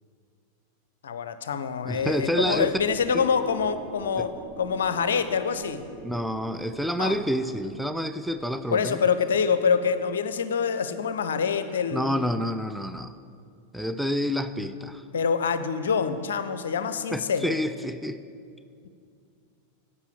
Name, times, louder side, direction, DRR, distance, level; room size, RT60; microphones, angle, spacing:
voice 1, 1.0-4.3 4.6-5.8 7.0-7.2 8.7-12.2 15.1-17.5 18.8-18.9, left 6 dB, 65° left, 11 dB, 0.5 m, -26 dB
voice 2, 1.8-2.7 3.1-3.3 4.2-4.3 6.0-9.0 11.9-13.2 13.7-15.1 17.1-18.2, equal, ahead, 9 dB, 0.3 m, -28 dB
sound 1, 1.9-9.3, right 3 dB, 40° right, 1.0 m, -44 dB
8.2 x 5.6 x 7.9 m, 2.4 s
figure-of-eight pair, 90°, 0 cm